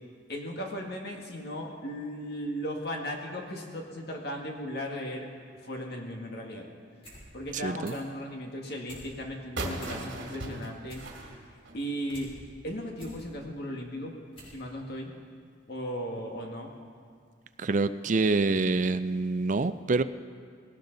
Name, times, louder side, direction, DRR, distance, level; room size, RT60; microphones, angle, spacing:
voice 1, 0.3-5.3 5.6-6.7 7.3-11.0 11.3-11.4 11.7-12.3 12.6-14.1 14.5-15.2 15.7-16.7, equal, 55° left, 1 dB, 1.9 m, -36 dB
sound 1, 7.0-7.2 7.5-8.1 8.5-9.1 9.4-9.5 9.7-10.3 10.6-12.3 12.7-13.2 13.8-13.9 14.3-14.6 14.9-15.0, equal, 30° left, 5.3 m, -49 dB
voice 2, 7.5-7.9 17.6-20.0, right 3 dB, 40° right, 12 dB, 0.4 m, -26 dB
sound 2, 9.6-12.3, right 1 dB, 75° right, 2.4 m, -37 dB
19.5 x 17.5 x 4.0 m, 2.1 s
head